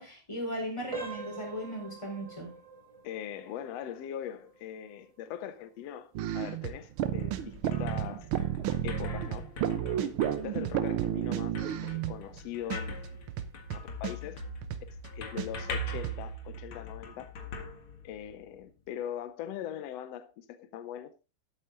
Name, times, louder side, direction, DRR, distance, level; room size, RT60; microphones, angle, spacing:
voice 1, 0.0-2.5, equal, 10° left, 4.0 m, -37 dB
sound 1, 0.9-11.6 11.9-12.2 12.8-12.9 13.4-13.5, right 3 dB, 20° right, 0.9 m, -48 dB
voice 2, 3.0-8.3 8.8-9.5 9.8-10.1 10.4-11.5 11.8-13.2 13.7-14.4 15.1-17.3 18.0-21.1, left 10 dB, 70° left, 1.8 m, -41 dB
sound 2, 6.1-12.4 12.7-12.8 13.0-15.1 15.4-15.5 15.7-16.2, right 11 dB, 80° right, 1.2 m, -32 dB
sound 3, 7.0-18.5, equal, 50° left, 2.3 m, -42 dB
12.5 x 8.2 x 3.8 m
omnidirectional pair, 3.3 m